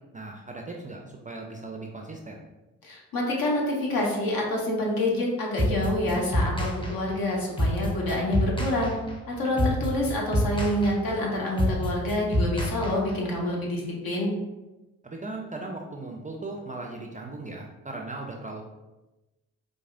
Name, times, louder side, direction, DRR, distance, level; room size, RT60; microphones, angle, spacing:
voice 1, 0.1-2.4 9.5-9.7 15.0-18.6, right 2 dB, 20° right, 1 dB, 0.4 m, -38 dB
voice 2, 2.8-8.9 9.3-14.3, left 1 dB, 55° left, -2 dB, 1.1 m, -27 dB
sound 1, 5.6-13.4, equal, 10° left, 0.8 m, -27 dB
4.7 x 2.1 x 2.5 m, 1.0 s
hypercardioid pair, 40°, 42 cm